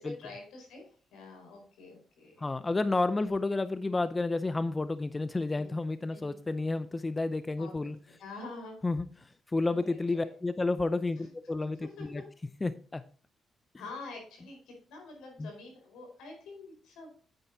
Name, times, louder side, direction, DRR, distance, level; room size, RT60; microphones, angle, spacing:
voice 1, 0.0-2.5 3.1-3.3 5.5-5.8 6.1-6.4 7.5-8.8 9.6-10.3 11.2-11.3 11.8-12.2 13.7-17.2, left 3 dB, 85° left, 2 dB, 4.7 m, -47 dB
voice 2, 2.4-7.9 8.8-12.2 12.6-13.0 15.4-15.5, left 3 dB, 25° left, 12 dB, 0.6 m, -31 dB
9.5 x 9.0 x 2.8 m, 0.40 s
cardioid pair, 65°, 0 cm